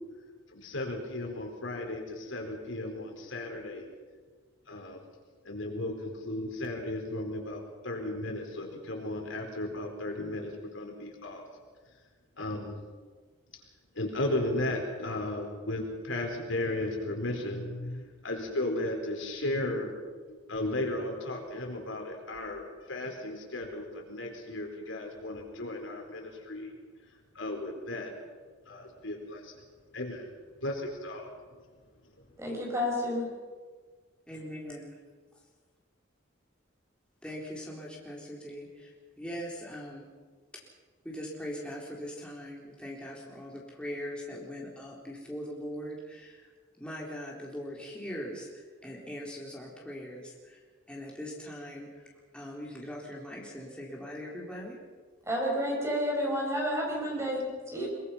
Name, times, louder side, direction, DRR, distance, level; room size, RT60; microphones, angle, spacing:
voice 1, 0.5-3.8 4.7-5.0 5.4-11.5 12.4-12.8 13.9-26.7 27.3-28.1 28.7-29.6 29.9-30.3 30.6-31.3, left 1 dB, 85° left, 2 dB, 4.6 m, -35 dB
voice 2, 32.4-33.3 55.3-57.9, equal, 15° right, -2 dB, 6.8 m, -30 dB
voice 3, 34.3-34.9 37.2-38.9 39.2-40.1 41.0-46.5 46.8-50.6 50.9-51.9 52.3-54.8, equal, 5° left, -3 dB, 3.9 m, -41 dB
23.5 x 22.5 x 5.8 m, 1.5 s
head